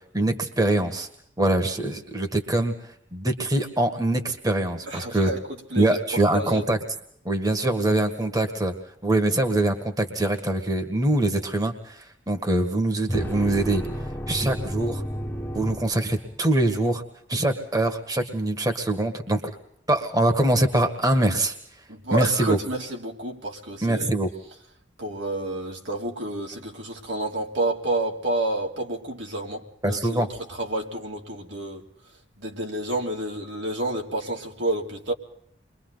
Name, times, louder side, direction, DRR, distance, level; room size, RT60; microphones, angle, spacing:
voice 1, 0.1-1.1 1.4-2.7 3.1-5.3 5.8-6.8 7.3-8.7 9.0-13.8 14.3-15.0 15.5-17.0 17.3-19.4 19.9-21.5 22.1-22.6 23.8-24.3 29.8-30.3, right 1 dB, 20° right, 1.8 m, -23 dB
voice 2, 4.9-6.0 6.3-6.7 21.9-24.1 25.0-31.8 32.4-35.1, right 1 dB, 75° right, 3.2 m, -30 dB
sound 1, 13.1-16.5, equal, 10° left, 1.4 m, -32 dB
29.5 x 23.5 x 4.0 m
head